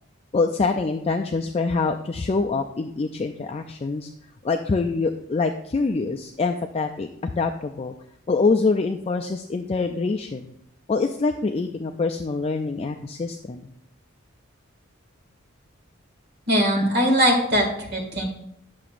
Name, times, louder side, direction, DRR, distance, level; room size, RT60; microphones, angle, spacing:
voice 1, 0.3-4.1 4.4-7.9 8.3-10.5 10.9-13.7, left 4 dB, 30° left, 5 dB, 0.3 m, -25 dB
voice 2, 16.5-18.2, equal, 50° right, 0 dB, 2.1 m, -21 dB
10.5 x 6.8 x 2.5 m, 0.78 s
head